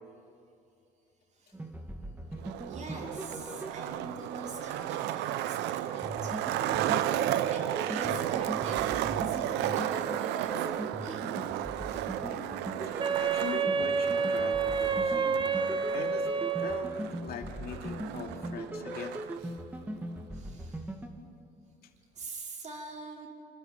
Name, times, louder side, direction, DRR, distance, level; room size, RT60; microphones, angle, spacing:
voice 1, 1.3-1.6 2.7-6.5 7.0-11.2 11.9-12.0 20.3-21.0 22.1-23.3, right 2 dB, 45° right, 0 dB, 5.3 m, -44 dB
sound 1, 1.5-4.5 6.0-21.1, right 1 dB, 10° right, 2.5 m, -40 dB
Skateboard, 2.4-19.4, right 12 dB, 90° right, 0.9 m, -34 dB
voice 2, 12.2-15.4 15.9-16.3 16.6-16.9 17.2-19.2, left 7 dB, 65° left, 4 dB, 2.7 m, -42 dB
Wind instrument woodwind instrument, 13.0-17.1, right 5 dB, 30° right, 1.0 m, -29 dB
27.5 x 26.5 x 5.3 m, 2.7 s
cardioid pair, 110°, 17 cm